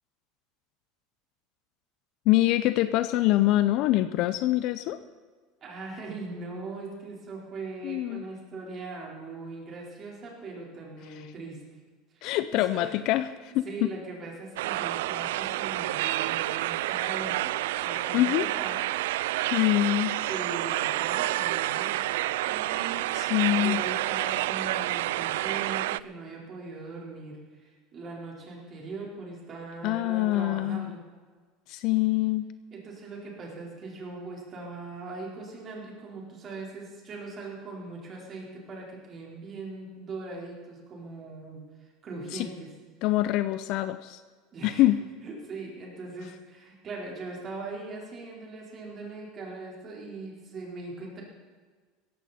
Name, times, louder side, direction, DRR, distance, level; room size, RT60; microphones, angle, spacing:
voice 1, 2.3-5.0 7.8-8.3 12.2-13.9 18.1-18.5 19.5-20.1 23.1-23.8 29.8-31.0 31.7-32.5 42.3-42.5 43.0-44.2 44.6-45.0, left 16 dB, 55° left, 13 dB, 0.5 m, -25 dB
voice 2, 5.6-11.6 12.1-12.9 13.6-18.8 20.3-22.1 22.4-23.1 23.4-31.0 32.7-42.7 44.5-44.8 45.2-51.2, right 3 dB, 30° right, -2 dB, 4.3 m, -40 dB
sound 1, 14.6-26.0, right 16 dB, 90° right, 0.3 m, -29 dB
17.5 x 15.0 x 4.3 m, 1.5 s
supercardioid pair, 145°, 0 cm